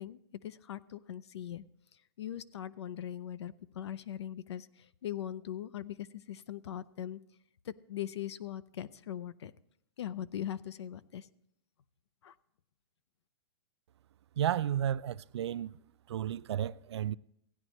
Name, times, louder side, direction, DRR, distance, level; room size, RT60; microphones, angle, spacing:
voice 1, 0.0-1.7 2.2-7.2 7.6-9.5 10.0-11.3 12.2-12.3, left 11 dB, 90° left, 0.6 m, -40 dB
voice 2, 14.4-15.7 16.1-17.2, right 10 dB, 90° right, 0.4 m, -32 dB
16.0 x 9.9 x 3.1 m
hypercardioid pair, 175°, 14 cm